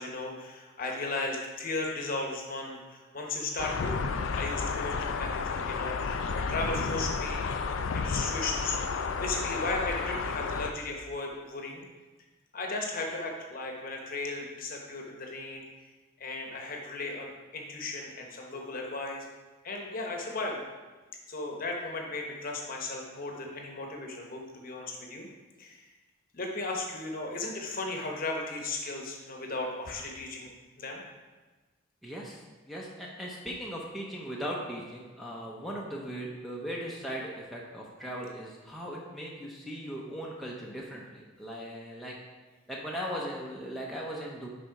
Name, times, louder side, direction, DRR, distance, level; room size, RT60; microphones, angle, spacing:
voice 1, 0.0-4.1 4.3-7.7 7.9-8.8 9.2-11.8 12.5-15.6 16.2-19.3 19.6-20.6 21.3-25.3 25.6-25.8 26.3-30.5 30.8-31.0, left 2 dB, 40° left, 1 dB, 0.9 m, -36 dB
sound 1, 3.6-10.7, left 5 dB, 70° left, 0.4 m, -32 dB
voice 2, 32.0-32.4 32.7-42.2 42.7-44.5, equal, ahead, -5 dB, 0.7 m, -38 dB
6.5 x 4.2 x 4.7 m, 1.3 s
head